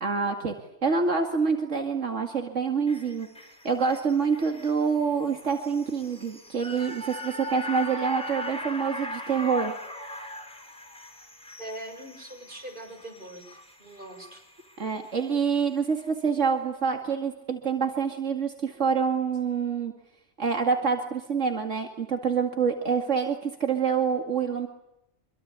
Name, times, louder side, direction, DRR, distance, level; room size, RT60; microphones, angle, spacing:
voice 1, 0.0-0.5 0.8-3.3 3.6-9.7 14.8-19.9 20.4-24.7, right 5 dB, 85° right, 4 dB, 2.6 m, -26 dB
sound 1, 2.9-15.2 15.6-15.7, equal, 5° left, 4.5 m, -40 dB
voice 2, 11.6-14.4, right 1 dB, 45° right, 5 dB, 7.2 m, -42 dB
26.5 x 23.5 x 8.3 m, 0.85 s
omnidirectional pair, 1.2 m